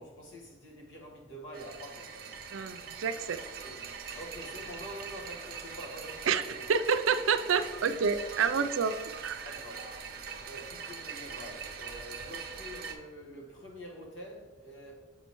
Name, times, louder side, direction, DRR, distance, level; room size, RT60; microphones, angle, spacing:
voice 1, 0.0-2.4 3.6-3.7 4.1-6.5 9.4-10.0 10.5-14.9, equal, 70° left, 1.4 m, -46 dB
sound 1, 1.5-13.0, right 5 dB, 50° right, 0.6 m, -42 dB
voice 2, 2.5-3.4 6.3-8.9 9.2-9.4, right 6 dB, 90° right, 0.4 m, -28 dB
6.9 x 5.6 x 3.0 m
head